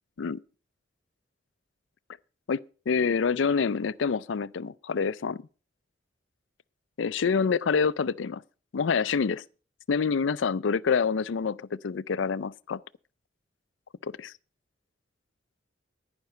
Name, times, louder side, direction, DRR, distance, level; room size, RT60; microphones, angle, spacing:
voice 1, 2.9-5.4 7.0-8.4 8.7-9.4 9.9-12.8 14.0-14.3, left 5 dB, 90° left, 0.5 m, -27 dB
10.5 x 10.5 x 5.5 m
head